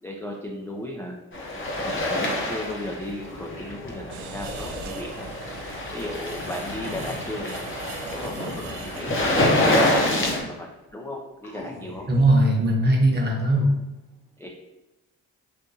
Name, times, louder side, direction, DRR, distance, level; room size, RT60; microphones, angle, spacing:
voice 1, 0.0-1.2 1.5-5.3 5.9-7.5 8.1-10.7 10.9-12.1 14.4-14.5, left 1 dB, 5° left, -1 dB, 0.4 m, -36 dB
sound 1, 1.3-10.4, left 1 dB, 30° left, 0.8 m, -26 dB
sound 2, 2.5-2.6 2.8-4.8 6.3-7.3 8.1-8.8 9.8-10.5 10.9-11.0 11.4-12.4, left 1 dB, 55° left, 1.0 m, -41 dB
sound 3, 4.1-9.4, right 4 dB, 85° right, 0.5 m, -40 dB
voice 2, 12.1-13.7, right 1 dB, 25° right, -1 dB, 1.0 m, -19 dB
3.7 x 2.5 x 2.7 m, 1.0 s
cardioid pair, 75°, 38 cm